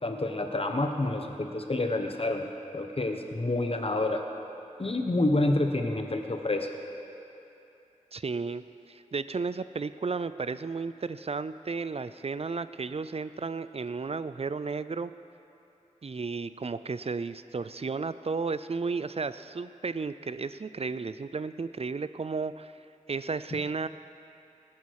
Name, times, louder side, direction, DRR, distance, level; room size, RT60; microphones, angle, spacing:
voice 1, 0.0-4.2 4.8-6.7, left 2 dB, 45° left, 4 dB, 1.2 m, -28 dB
voice 2, 8.1-15.1 16.0-22.7 23.1-23.9, right 4 dB, 50° right, 14 dB, 0.4 m, -33 dB
17.5 x 10.5 x 4.8 m, 2.9 s
wide cardioid pair, 55°, 14 cm